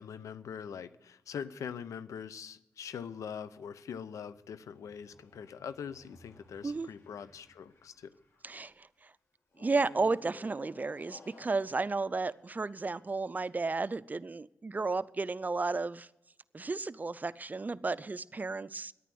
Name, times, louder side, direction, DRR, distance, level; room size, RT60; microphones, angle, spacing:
voice 1, 0.0-8.1, left 7 dB, 85° left, 14 dB, 0.7 m, -43 dB
sound 1, 4.3-8.7 9.5-13.1, left 2 dB, 65° left, 3.3 m, -58 dB
voice 2, 8.4-8.9 9.6-16.1 16.5-18.9, right 3 dB, 30° right, 17 dB, 0.5 m, -33 dB
11.0 x 9.0 x 7.8 m, 0.88 s
cardioid pair, 50°, 5 cm